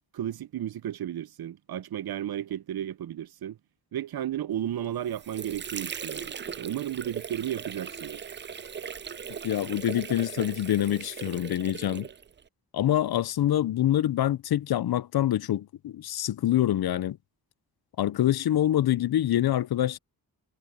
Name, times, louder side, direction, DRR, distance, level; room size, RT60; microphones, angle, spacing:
voice 1, 0.1-3.6 3.9-8.3, right 11 dB, 70° right, 0.6 m, -33 dB
Water / Sink (filling or washing), 4.8-12.5, right 7 dB, 30° right, 0.4 m, -39 dB
voice 2, 9.4-12.1 12.7-17.2 18.0-20.0, left 12 dB, 70° left, 0.6 m, -25 dB
cardioid pair, 60°, 38 cm